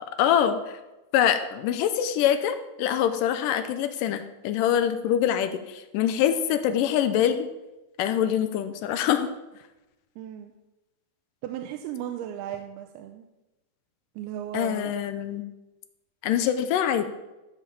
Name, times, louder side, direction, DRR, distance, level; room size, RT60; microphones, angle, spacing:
voice 1, 0.2-0.8 1.1-7.5 8.0-9.3 14.5-15.4 16.2-17.1, left 9 dB, 75° left, 9 dB, 2.0 m, -24 dB
voice 2, 10.2-10.5 11.4-13.3 14.2-14.9, right 11 dB, 85° right, 5 dB, 2.6 m, -35 dB
13.0 x 5.1 x 7.2 m, 1.0 s
omnidirectional pair, 4.6 m